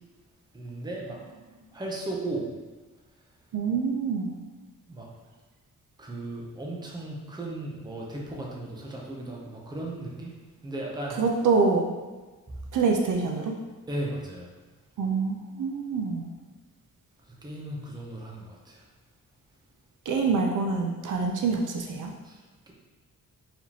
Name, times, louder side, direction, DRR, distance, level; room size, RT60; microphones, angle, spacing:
voice 1, 0.5-1.2 1.7-2.5 4.9-5.1 6.0-10.3 10.6-11.2 13.9-14.5 17.4-18.8 22.2-22.4 22.7-22.8, right 2 dB, 10° right, -2 dB, 0.6 m, -36 dB
voice 2, 3.5-4.3 11.2-11.8 12.7-13.5 15.0-16.3 20.1-22.1, right 4 dB, 65° right, 2 dB, 0.5 m, -25 dB
4.8 x 3.5 x 2.8 m, 1.3 s
wide cardioid pair, 175°, 34 cm